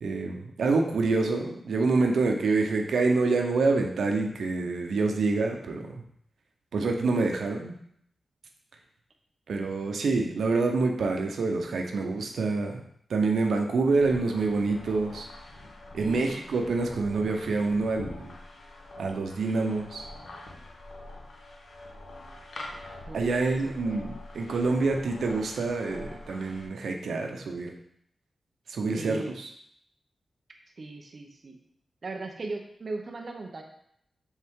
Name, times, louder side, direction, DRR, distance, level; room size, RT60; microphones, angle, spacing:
voice 1, 0.0-6.0 6.7-7.7 9.5-12.8 13.1-15.3 15.9-18.3 19.0-20.1 23.1-27.7 28.7-29.2, right 3 dB, 90° right, 3 dB, 0.8 m, -27 dB
sound 1, 14.0-26.7, left 2 dB, 60° left, 0.8 m, -45 dB
voice 2, 16.0-16.4 23.1-24.0 28.9-29.4 30.8-31.6 32.0-33.6, right 3 dB, 40° right, 2 dB, 0.7 m, -38 dB
7.2 x 3.7 x 3.6 m, 0.70 s
wide cardioid pair, 175°, 0 cm